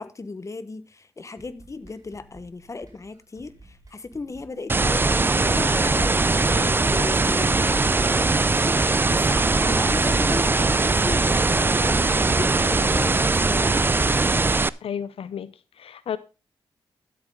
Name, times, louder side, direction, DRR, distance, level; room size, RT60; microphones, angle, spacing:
voice 1, 0.0-5.1 5.5-13.9, left 3 dB, 30° left, 1.3 m, -35 dB
sound 1, 1.4-9.4, right 2 dB, 40° right, 6.2 m, -53 dB
sound 2, 4.7-14.7, right 3 dB, 20° right, 0.5 m, -21 dB
voice 2, 14.8-16.2, left 8 dB, 80° left, 0.7 m, -32 dB
13.0 x 8.3 x 3.8 m
cardioid pair, 90°, 10 cm